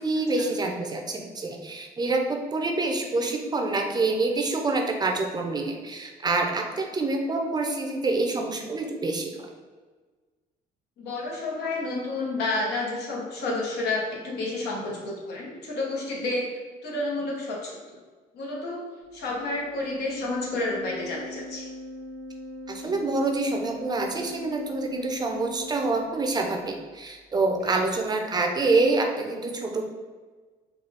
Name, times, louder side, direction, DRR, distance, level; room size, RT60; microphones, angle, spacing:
voice 1, 0.0-9.5 22.7-29.9, right 3 dB, 25° right, 2 dB, 0.5 m, -26 dB
voice 2, 11.0-16.5 16.8-17.8 18.3-18.8 19.1-21.7 27.6-27.8, left 2 dB, 80° left, -2 dB, 1.0 m, -30 dB
Organ, 19.9-26.5, left 1 dB, 80° right, 0.7 m, -40 dB
3.8 x 2.3 x 3.4 m, 1.4 s
cardioid pair, 110°, 17 cm